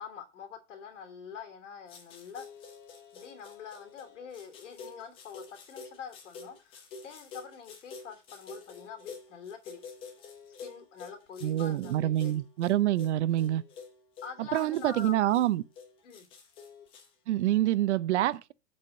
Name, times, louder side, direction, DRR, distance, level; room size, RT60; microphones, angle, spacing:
voice 1, 0.0-2.5 3.1-9.8 10.6-12.4 14.2-15.2 16.0-16.3, left 7 dB, 85° left, 2.9 m, -45 dB
sound 1, 1.9-17.1, left 5 dB, 15° left, 0.7 m, -49 dB
voice 2, 11.4-13.6 14.4-15.6 17.3-18.5, right 13 dB, 75° right, 0.7 m, -26 dB
7.3 x 4.9 x 5.2 m
supercardioid pair, 175°, 36 cm